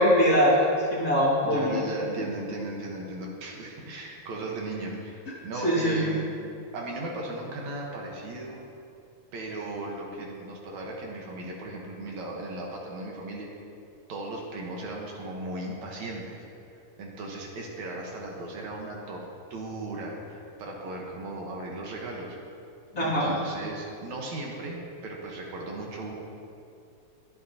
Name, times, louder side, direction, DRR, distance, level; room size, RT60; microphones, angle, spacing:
voice 1, 0.0-1.9 5.6-6.0 22.9-23.3, equal, 30° left, -8 dB, 2.6 m, -22 dB
voice 2, 1.4-6.2 6.7-8.6 9.3-13.5 14.1-16.4 17.0-19.3 19.5-22.4 23.0-26.1, right 2 dB, 70° right, -1 dB, 2.5 m, -36 dB
22.5 x 8.6 x 2.9 m, 2.6 s
omnidirectional pair, 3.5 m